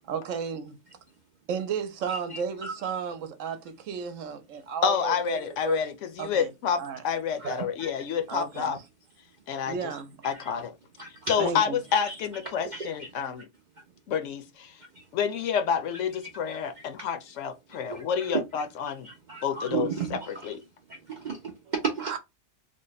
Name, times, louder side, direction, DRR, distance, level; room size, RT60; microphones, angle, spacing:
voice 1, 0.1-0.8 1.5-5.8 6.2-6.5 6.8-7.0 8.3-8.8 9.7-10.2 11.4-11.8 22.0-22.2, right 6 dB, 75° right, 1.0 m, -33 dB
voice 2, 2.1-2.7 7.4-7.9 10.2-10.5 11.0-11.3 12.0-12.2 12.7-13.1 15.0-15.1 16.8-16.9 17.9-18.4 19.0-20.5 20.9-22.1, right 5 dB, 55° right, 0.5 m, -34 dB
voice 3, 4.8-6.8 7.0-8.8 9.5-9.7 10.2-10.7 11.3-13.5 14.1-14.7 15.1-19.1 19.4-20.6, left 7 dB, 70° left, 0.9 m, -29 dB
3.3 x 2.1 x 3.9 m
omnidirectional pair, 1.4 m